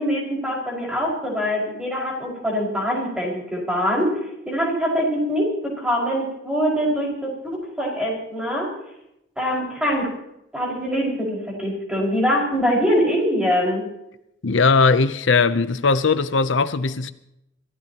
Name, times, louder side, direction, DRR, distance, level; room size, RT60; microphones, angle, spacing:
voice 1, 0.0-4.1 4.5-8.7 9.4-10.1 10.5-13.8, equal, 5° right, 5.4 m, -23 dB
voice 2, 14.4-17.1, left 4 dB, 75° left, 0.7 m, -19 dB
27.5 x 15.5 x 3.0 m
head